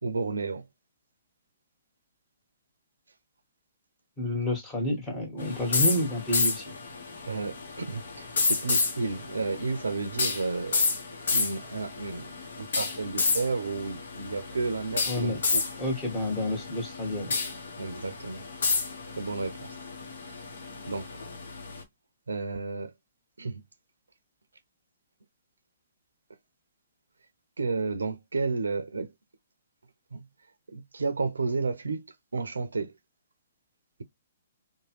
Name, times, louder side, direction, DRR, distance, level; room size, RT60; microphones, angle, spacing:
voice 1, 0.0-0.7 7.3-10.9 11.3-15.7 17.8-18.4 19.2-19.8 20.3-20.4 20.9-21.1 22.3-22.9 23.4-23.6 27.6-29.1 30.1-30.3 30.7-32.1 32.3-32.9, right 4 dB, 85° right, 0.5 m, -32 dB
voice 2, 4.2-6.7 15.1-15.4 15.8-17.3, left 1 dB, 20° left, 1.5 m, -29 dB
sound 1, 5.4-21.8, left 4 dB, 65° left, 0.9 m, -31 dB
2.9 x 2.2 x 3.0 m
hypercardioid pair, 125°, 0 cm